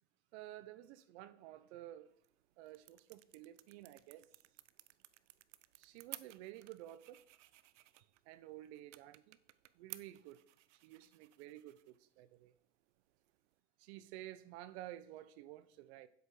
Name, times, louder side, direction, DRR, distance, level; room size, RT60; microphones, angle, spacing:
voice 1, 0.3-2.1 2.6-4.3 5.8-7.2 8.3-9.4 9.8-10.4 10.8-12.5 13.8-16.1, right 14 dB, 65° right, 1.0 m, -52 dB
sound 1, 2.1-13.6, right 16 dB, 90° right, 0.7 m, -58 dB
9.0 x 8.1 x 4.9 m
supercardioid pair, 120°, 36 cm